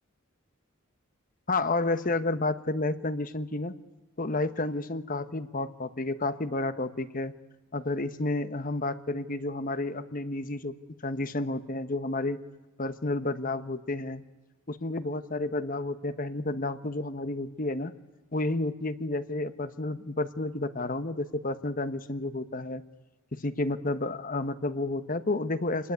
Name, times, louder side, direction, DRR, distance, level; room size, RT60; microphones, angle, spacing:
voice 1, 1.5-3.7 4.2-7.3 7.7-10.8 11.0-12.4 12.8-14.2 14.7-17.9 18.3-22.8 23.3-25.9, left 2 dB, 40° left, 12 dB, 1.1 m, -31 dB
28.0 x 21.0 x 9.8 m, 1.1 s
head